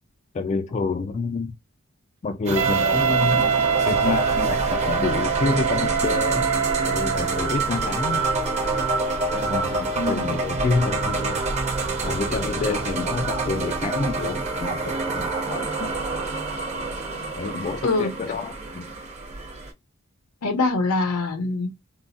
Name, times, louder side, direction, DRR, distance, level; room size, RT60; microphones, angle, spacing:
voice 1, 0.3-1.5 2.2-6.5 6.9-8.2 9.3-11.4 12.0-15.9 17.4-18.9, left 3 dB, 30° left, 0.3 m, -28 dB
sound 1, 2.5-19.7, right 3 dB, 30° right, 0.8 m, -27 dB
Wind instrument woodwind instrument, 2.6-7.6, right 7 dB, 60° right, 0.4 m, -24 dB
voice 2, 10.0-10.4 17.8-18.1 20.4-21.7, left 3 dB, 85° left, 0.9 m, -24 dB
3.7 x 2.0 x 2.4 m
head